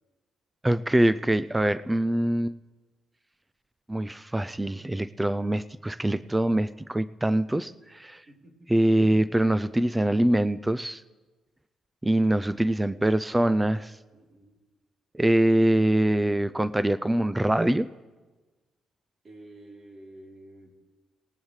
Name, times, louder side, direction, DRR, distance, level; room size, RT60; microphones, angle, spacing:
voice 1, 0.6-2.5 3.9-8.2 8.7-11.0 12.0-13.9 15.1-17.9, right 1 dB, 10° right, 14 dB, 0.4 m, -24 dB
voice 2, 8.3-8.9 14.1-14.6 19.2-20.8, right 1 dB, 40° right, -1 dB, 3.6 m, -50 dB
19.0 x 19.0 x 3.2 m, 1.3 s
cardioid pair, 90°, 0 cm